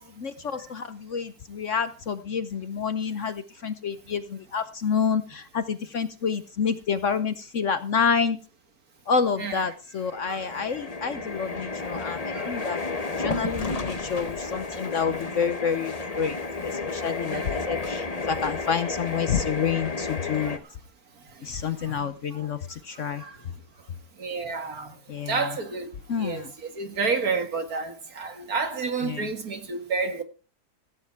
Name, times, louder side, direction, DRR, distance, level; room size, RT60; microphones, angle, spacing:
voice 1, 0.2-8.4 9.1-12.8 13.2-16.4 16.6-20.6 21.4-23.2 25.1-25.5 26.1-26.5 29.0-29.3, left 6 dB, 55° left, 1.0 m, -28 dB
sound 1, 10.0-20.6, left 3 dB, 25° left, 1.0 m, -32 dB
voice 2, 17.3-17.6 20.4-20.5 21.8-22.4 23.2-23.4 24.2-25.0 25.3-25.9 26.2-30.2, right 4 dB, 60° right, 2.4 m, -30 dB
15.5 x 9.5 x 4.6 m
omnidirectional pair, 1.8 m